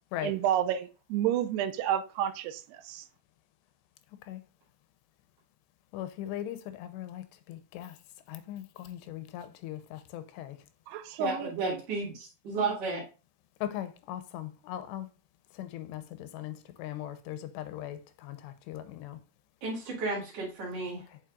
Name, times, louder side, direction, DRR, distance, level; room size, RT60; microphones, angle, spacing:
voice 1, 0.2-3.0 10.9-11.8, right 11 dB, 85° right, 2.5 m, -30 dB
voice 2, 5.9-8.0 8.3-10.6 13.6-15.1 15.5-19.2 21.1-21.2, left 12 dB, 85° left, 2.8 m, -39 dB
voice 3, 11.2-13.0 19.6-21.0, right 3 dB, 50° right, 2.1 m, -33 dB
7.4 x 5.4 x 2.4 m
omnidirectional pair, 4.9 m